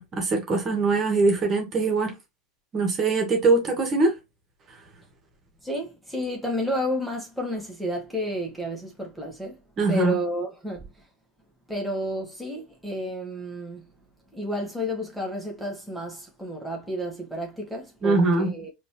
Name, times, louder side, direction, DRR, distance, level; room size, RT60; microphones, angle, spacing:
voice 1, 0.0-2.1 2.7-4.1 9.8-10.2 18.0-18.5, right 3 dB, 35° right, 2.0 m, -22 dB
voice 2, 5.6-9.6 9.9-10.9 11.7-13.9 14.3-18.7, equal, ahead, 1.9 m, -31 dB
5.1 x 3.0 x 3.3 m
figure-of-eight pair, 80°, 0 cm